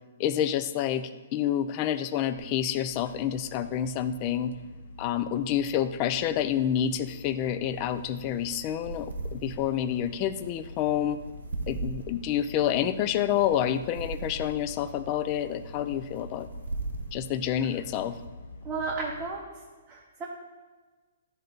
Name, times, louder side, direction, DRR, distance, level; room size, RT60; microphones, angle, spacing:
voice 1, 0.2-4.5 5.0-11.2 11.7-16.5 17.1-18.2, left 10 dB, 30° left, 12 dB, 0.3 m, -28 dB
sound 1, 2.4-19.3, left 2 dB, 60° left, 0.7 m, -45 dB
sound 2, 7.7-18.3, right 3 dB, 80° right, 0.8 m, -40 dB
voice 2, 18.6-19.6 19.9-20.3, right 4 dB, 15° right, -3 dB, 0.7 m, -33 dB
11.0 x 3.9 x 3.9 m, 1.3 s
hypercardioid pair, 155°, 0 cm